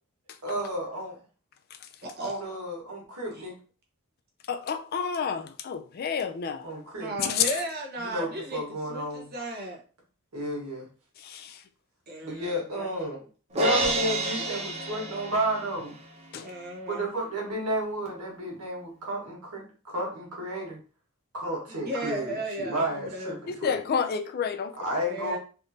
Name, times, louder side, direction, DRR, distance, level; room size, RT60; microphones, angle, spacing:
voice 1, 0.4-1.2 2.2-3.6 6.6-7.1 8.0-9.3 10.3-10.9 12.2-13.2 13.5-15.9 16.9-20.8 21.3-23.8 24.8-25.4, right 1 dB, 90° right, 1.4 m, -32 dB
voice 2, 2.0-2.4 3.3-3.4 7.0-9.8 12.1-12.9 16.4-17.1 21.7-23.4 25.1-25.4, right 1 dB, 45° right, 0.9 m, -35 dB
voice 3, 4.5-6.7 7.2-7.6 11.2-11.6 16.3-16.5 23.5-24.8, left 7 dB, 45° left, 0.3 m, -30 dB
Crash cymbal, 13.6-15.8, right 1 dB, 30° right, 0.5 m, -28 dB
3.5 x 2.5 x 2.7 m
head